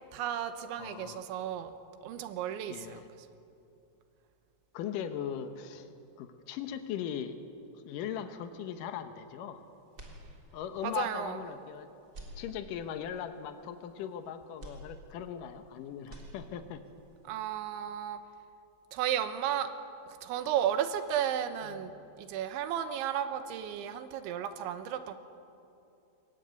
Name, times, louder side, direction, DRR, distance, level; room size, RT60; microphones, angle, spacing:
voice 1, 0.1-1.7 2.0-3.0 10.8-11.4 17.3-18.2 18.9-19.7 20.1-25.1, right 10 dB, 85° right, 9 dB, 3.4 m, -33 dB
voice 2, 0.8-1.2 2.7-3.1 4.7-5.9 6.2-7.4 7.7-9.6 10.5-11.9 12.4-16.8, left 9 dB, 85° left, 8 dB, 1.9 m, -39 dB
sound 1, 9.9-10.8 11.3-11.4 12.0-13.1 14.6-15.7 16.0-16.9, right 1 dB, 25° right, 3.2 m, -49 dB
23.0 x 21.0 x 9.4 m, 2.7 s
omnidirectional pair, 5.3 m